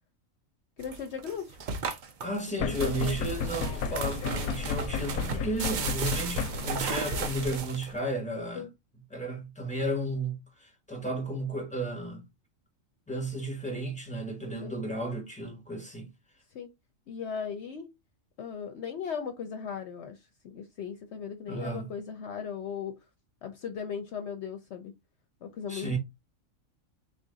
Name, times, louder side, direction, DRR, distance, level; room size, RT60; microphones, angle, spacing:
voice 1, 0.8-1.6 2.6-3.2 8.5-8.7 14.6-14.7 16.5-16.7 17.1-17.9 18.4-20.2 20.4-23.0 23.4-24.9 25.4-26.0, left 7 dB, 65° left, 0.8 m, -37 dB
sound 1, 0.8-8.1, right 5 dB, 70° right, 0.4 m, -35 dB
voice 2, 2.2-8.7 9.1-12.2 13.1-16.1 21.5-21.9 25.7-26.0, right 1 dB, 5° left, 1.2 m, -33 dB
sound 2, 2.6-7.6, left 5 dB, 90° left, 1.0 m, -33 dB
3.8 x 2.5 x 3.8 m
omnidirectional pair, 1.4 m